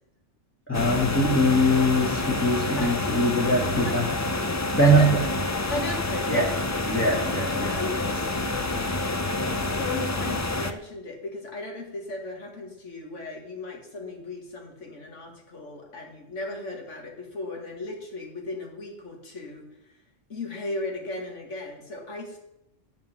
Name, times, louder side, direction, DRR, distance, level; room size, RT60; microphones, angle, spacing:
sound 1, 0.7-10.7, left 2 dB, 30° left, 0.3 m, -28 dB
voice 1, 0.7-4.3 4.6-5.2 6.3-6.5 6.9-7.8 8.0-8.3, equal, 10° left, -3 dB, 1.4 m, -23 dB
voice 2, 3.8-4.2 4.8-5.1 5.7-6.5 7.1-8.2 8.5-9.1 9.5-19.6 20.3-22.4, left 2 dB, 70° left, 2 dB, 2.3 m, -36 dB
7.6 x 7.3 x 7.4 m, 0.86 s
omnidirectional pair, 1.3 m